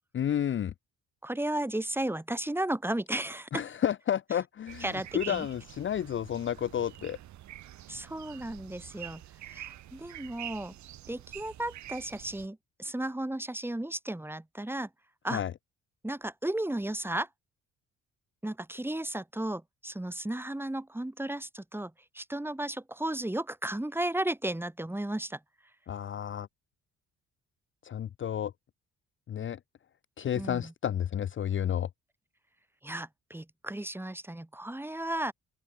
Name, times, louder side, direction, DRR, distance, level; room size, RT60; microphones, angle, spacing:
voice 1, 0.1-0.7 3.5-7.2 15.3-15.5 25.9-26.5 27.8-28.5 29.3-29.6 30.2-31.9, left 10 dB, 40° left, 0.6 m, -31 dB
voice 2, 1.2-3.6 4.8-5.5 7.9-10.7 11.1-14.9 15.2-15.4 16.0-17.3 18.4-25.4 30.4-30.7 32.8-35.3, right 1 dB, 5° right, 2.2 m, -34 dB
sound 1, 4.7-12.5, right 13 dB, 70° right, 1.0 m, -46 dB
open air
cardioid pair, 90°, 30 cm